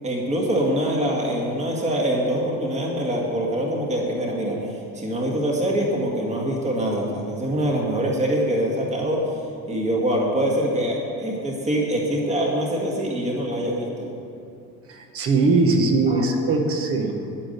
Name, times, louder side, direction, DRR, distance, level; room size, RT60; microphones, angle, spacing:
voice 1, 0.0-9.2 9.7-14.1 16.1-16.2, right 1 dB, 20° right, -2 dB, 1.9 m, -24 dB
voice 2, 14.9-17.1, right 3 dB, 40° right, 4 dB, 1.3 m, -20 dB
9.9 x 9.7 x 6.7 m, 2.6 s
cardioid pair, 170°, 36 cm